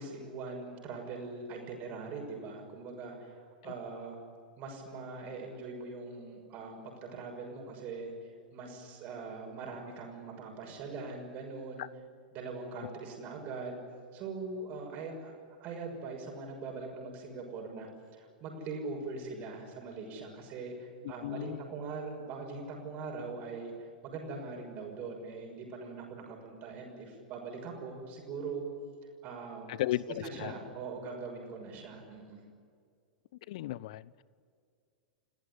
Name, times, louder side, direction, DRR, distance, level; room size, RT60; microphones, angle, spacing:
voice 1, 0.0-4.2 4.6-8.1 8.5-11.8 12.3-13.9 14.1-15.3 15.6-17.9 18.1-28.7 29.2-29.7 30.2-32.4, right 4 dB, 35° right, 1 dB, 6.1 m, -42 dB
voice 2, 21.0-21.6 29.7-30.1 30.4-30.5 33.5-34.2, left 15 dB, 50° left, 21 dB, 0.8 m, -35 dB
30.0 x 17.5 x 9.8 m, 2.2 s
figure-of-eight pair, 95°, 5 cm